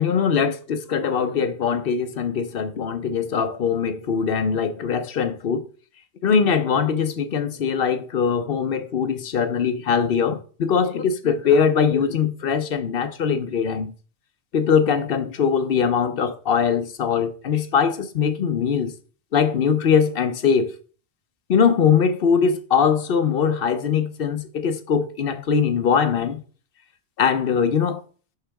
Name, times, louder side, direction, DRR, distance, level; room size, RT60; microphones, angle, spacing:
voice 1, 0.0-5.7 6.2-13.9 14.5-18.9 19.3-20.7 21.5-26.4 27.2-28.0, left 6 dB, 55° left, 0.8 m, -21 dB
10.5 x 4.1 x 3.4 m
omnidirectional pair, 1.2 m